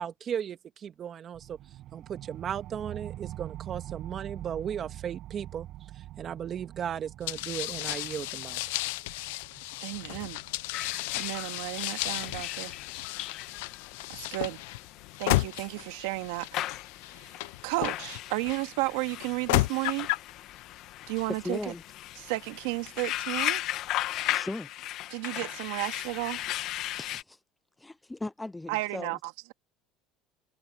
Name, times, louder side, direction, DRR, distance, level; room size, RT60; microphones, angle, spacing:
voice 1, 0.0-1.6 1.9-5.7 5.9-8.6, right 8 dB, 40° right, 1.8 m, -36 dB
sound 1, 1.3-12.4, right 14 dB, 55° right, 5.5 m, -45 dB
sound 2, 7.3-18.5 19.2-20.3, left 20 dB, 85° left, 0.7 m, -33 dB
voice 2, 9.8-10.4 11.2-12.7 14.1-14.6 15.2-16.5 17.1-20.1 21.1-21.7 22.2-23.6 25.1-26.5 28.7-29.5, right 22 dB, 80° right, 2.0 m, -33 dB
sound 3, 10.7-27.2, left 14 dB, 60° left, 1.6 m, -37 dB
voice 3, 21.4-21.8 24.3-24.7 27.0-27.4 27.8-29.1, left 2 dB, 10° left, 0.5 m, -37 dB
supercardioid pair, 115°, 0 cm